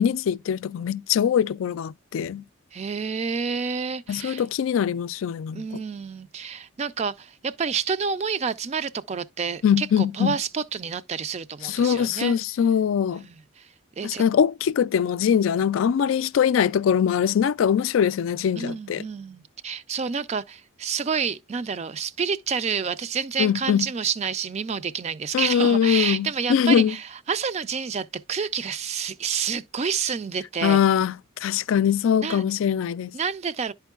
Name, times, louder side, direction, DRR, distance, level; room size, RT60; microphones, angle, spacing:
voice 1, 0.0-2.4 4.1-5.6 9.6-10.4 11.6-13.2 14.0-19.0 23.4-23.9 25.3-27.0 30.6-31.2 31.4-33.1, left 8 dB, 80° left, 0.3 m, -22 dB
voice 2, 2.7-4.4 5.5-12.4 13.1-13.7 14.0-14.2 18.6-30.8 32.2-32.4 33.1-33.7, right 6 dB, 35° right, 0.3 m, -29 dB
11.0 x 4.5 x 2.3 m
head